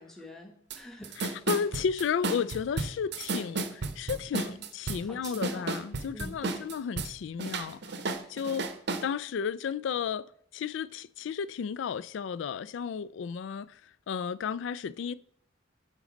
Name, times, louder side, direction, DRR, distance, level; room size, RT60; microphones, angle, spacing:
voice 1, 0.0-1.2 4.4-4.6 5.0-5.7 6.1-6.7, equal, ahead, 1.0 m, -45 dB
sound 1, 0.7-0.8 1.0-7.1 7.4-9.1, right 3 dB, 60° right, 0.7 m, -33 dB
voice 2, 1.2-8.0 8.3-8.7 9.0-13.8 14.1-15.1, left 6 dB, 70° left, 0.3 m, -33 dB
8.2 x 3.9 x 5.1 m
head